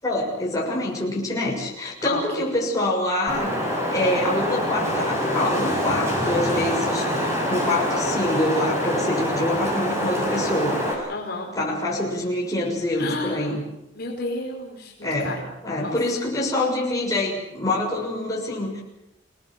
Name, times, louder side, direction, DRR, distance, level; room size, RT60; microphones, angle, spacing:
voice 1, 0.0-3.5 3.9-7.1 7.5-11.1 11.5-13.6 15.0-18.8, left 1 dB, 15° left, -2 dB, 6.6 m, -25 dB
Wind, 3.3-10.9, equal, 15° right, 6.9 m, -25 dB
voice 2, 11.1-11.5 13.0-13.6 14.0-15.4 15.8-15.9, left 2 dB, 50° left, 0 dB, 4.4 m, -31 dB
28.0 x 19.0 x 7.8 m, 0.87 s
head